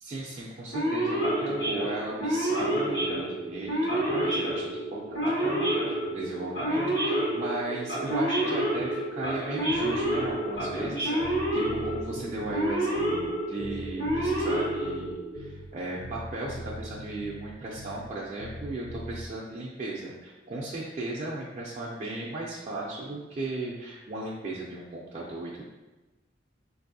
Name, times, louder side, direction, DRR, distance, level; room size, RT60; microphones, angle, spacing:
voice 1, 0.0-25.6, right 2 dB, 40° right, -5 dB, 0.4 m, -36 dB
Male speech man speaking / Siren, 0.7-15.4, right 1 dB, 85° left, 1.1 m, -29 dB
Bass guitar, 9.7-10.9 11.2-13.3 13.6-15.7 16.0-18.1 18.4-19.3, left 1 dB, 55° left, 0.3 m, -42 dB
4.0 x 2.6 x 2.6 m, 1.2 s
head